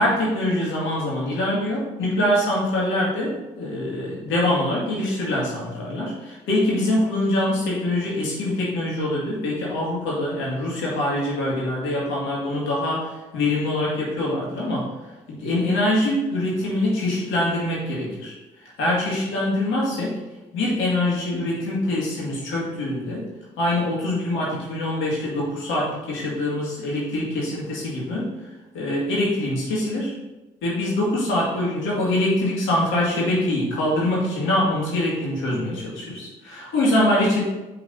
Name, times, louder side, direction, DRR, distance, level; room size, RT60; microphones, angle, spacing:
voice 1, 0.0-14.9 15.3-18.3 18.8-20.2 20.5-23.3 23.6-28.3 28.7-30.1 30.6-37.4, left 1 dB, 75° left, -5 dB, 2.0 m, -24 dB
5.4 x 3.9 x 5.3 m, 1.1 s
hypercardioid pair, 45°, 20 cm